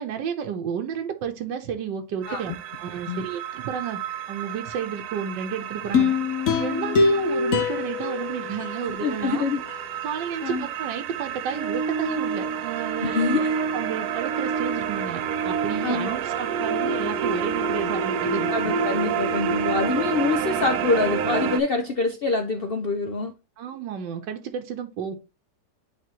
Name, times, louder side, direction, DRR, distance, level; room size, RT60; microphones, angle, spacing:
voice 1, 0.0-4.0 4.3-6.1 6.6-9.5 10.0-13.1 13.5-18.5 23.6-25.2, right 8 dB, 90° right, 1.5 m, -32 dB
sound 1, 2.2-21.6, right 6 dB, 70° right, 1.1 m, -29 dB
sound 2, 5.9-9.2 9.7-9.8, left 5 dB, 60° left, 1.0 m, -24 dB
voice 2, 8.9-9.6 10.4-10.7 13.0-13.5 15.8-16.2 18.5-23.3, left 4 dB, 75° left, 0.5 m, -25 dB
10.0 x 3.5 x 2.9 m
omnidirectional pair, 1.9 m